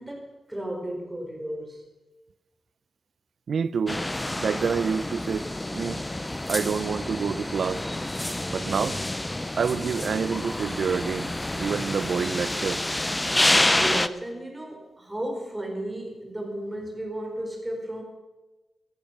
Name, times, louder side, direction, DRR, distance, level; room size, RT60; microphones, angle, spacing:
voice 1, 0.0-1.9 13.7-18.0, right 1 dB, 10° right, 1 dB, 4.4 m, -34 dB
voice 2, 3.5-4.0 4.4-5.5 5.7-6.0 6.5-7.8 8.5-9.0 9.6-11.3 11.6-12.8, right 6 dB, 60° right, 17 dB, 0.6 m, -27 dB
sound 1, 3.9-14.1, left 1 dB, 10° left, 0.6 m, -28 dB
15.5 x 14.5 x 6.0 m, 1.1 s
wide cardioid pair, 110°, 0 cm